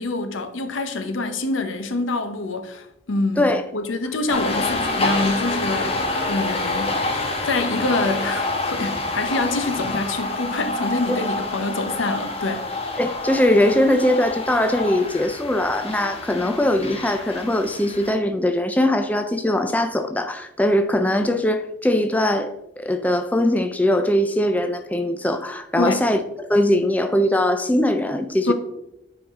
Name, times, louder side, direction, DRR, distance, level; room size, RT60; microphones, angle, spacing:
voice 1, 0.0-7.0 7.5-12.7 25.8-26.0 28.4-28.5, left 2 dB, 90° left, 0.8 m, -26 dB
sound 1, 4.3-18.1, left 2 dB, 30° left, 0.9 m, -27 dB
voice 2, 13.0-26.2 26.5-28.5, left 1 dB, 10° left, 0.3 m, -21 dB
8.9 x 4.8 x 3.6 m
head